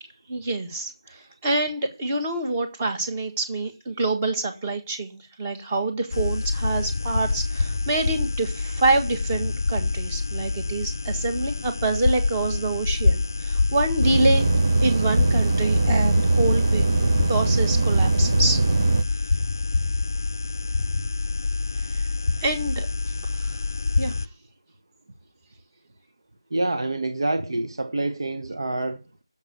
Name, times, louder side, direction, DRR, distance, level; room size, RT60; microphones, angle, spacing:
voice 1, 0.3-14.5 14.8-16.8 17.3-18.7 21.9-22.1 22.4-22.9 23.2-23.6 24.0-24.1, right 2 dB, 15° right, 1.7 m, -26 dB
sound 1, 6.1-24.3, left 3 dB, 40° left, 0.6 m, -26 dB
sound 2, 14.0-19.0, right 3 dB, 35° right, 0.6 m, -21 dB
voice 2, 26.5-29.0, right 2 dB, 60° right, 1.3 m, -27 dB
9.9 x 7.3 x 8.2 m
figure-of-eight pair, 170°, 3 cm